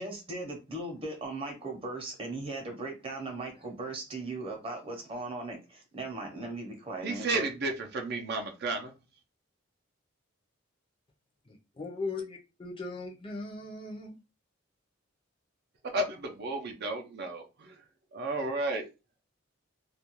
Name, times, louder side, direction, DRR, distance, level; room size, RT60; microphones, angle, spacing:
voice 1, 0.0-7.5, right 2 dB, 30° right, 0.8 m, -38 dB
voice 2, 7.0-8.9 15.9-17.7 18.1-18.9, right 2 dB, 55° right, 0.5 m, -32 dB
voice 3, 11.8-14.1, left 3 dB, 25° left, 0.5 m, -38 dB
2.4 x 2.2 x 2.9 m
head